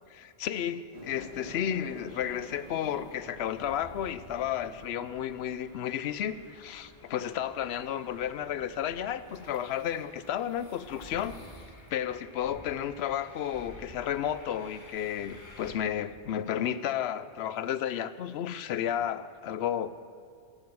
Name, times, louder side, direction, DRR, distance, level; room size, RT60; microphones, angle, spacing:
voice 1, 0.1-11.4 11.9-19.9, left 10 dB, 70° left, 15 dB, 0.8 m, -32 dB
sound 1, 0.9-13.5, right 2 dB, 65° right, 1.9 m, -53 dB
sound 2, 2.1-15.7, left 1 dB, 45° left, 2.0 m, -52 dB
12.0 x 8.0 x 7.2 m, 2.4 s
omnidirectional pair, 1.1 m